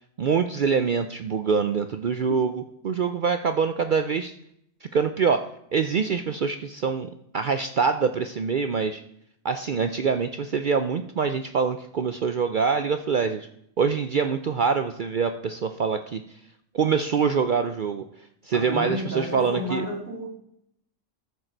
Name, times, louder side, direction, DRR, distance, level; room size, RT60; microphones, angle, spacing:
voice 1, 0.2-4.3 4.8-7.1 7.3-9.0 9.4-13.5 13.8-16.2 16.7-18.0 18.4-19.9, right 6 dB, 60° right, 8 dB, 0.5 m, -25 dB
voice 2, 18.5-20.3, left 1 dB, 15° right, -1 dB, 2.2 m, -31 dB
14.0 x 6.5 x 4.5 m, 0.74 s
omnidirectional pair, 1.4 m